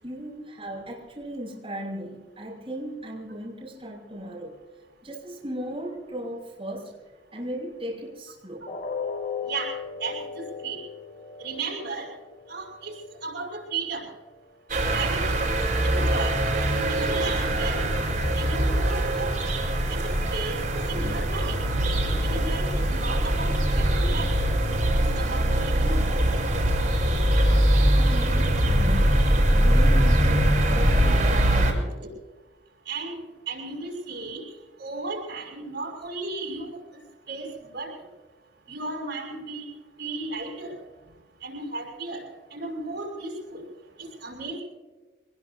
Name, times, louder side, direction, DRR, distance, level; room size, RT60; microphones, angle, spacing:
voice 1, 0.0-4.6 5.0-6.9 7.3-8.8 27.9-32.1, equal, 30° right, -4 dB, 6.0 m, -37 dB
sound 1, 8.7-14.6 15.0-15.2 15.7-15.8, left 6 dB, 70° left, 2.9 m, -38 dB
voice 2, 10.0-10.8 11.4-12.1 12.5-12.9 13.2-14.0 14.9-15.4 15.8-16.3 16.9-17.8 18.4-19.5 19.9-21.6 22.2-24.3 25.2-26.3 32.0-32.1 32.9-34.4 34.8-36.7 37.3-37.9 38.7-39.7 40.0-40.7 41.4-42.2 42.5-43.6 44.0-44.6, right 3 dB, 70° right, -2 dB, 5.5 m, -34 dB
sound 2, 14.7-31.7, right 1 dB, 50° right, 4.7 m, -22 dB
25.0 x 21.0 x 2.8 m, 1.3 s
head